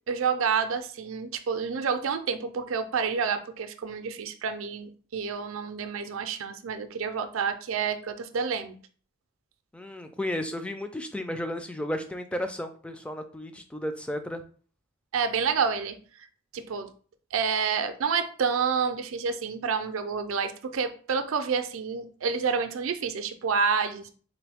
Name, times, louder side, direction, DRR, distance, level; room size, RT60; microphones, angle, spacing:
voice 1, 0.1-8.8 15.1-16.0 16.5-16.9 17.3-24.1, right 6 dB, 75° right, 9 dB, 0.4 m, -29 dB
voice 2, 9.7-14.4, left 1 dB, 5° left, 7 dB, 0.3 m, -33 dB
3.9 x 3.0 x 3.4 m, 0.42 s
head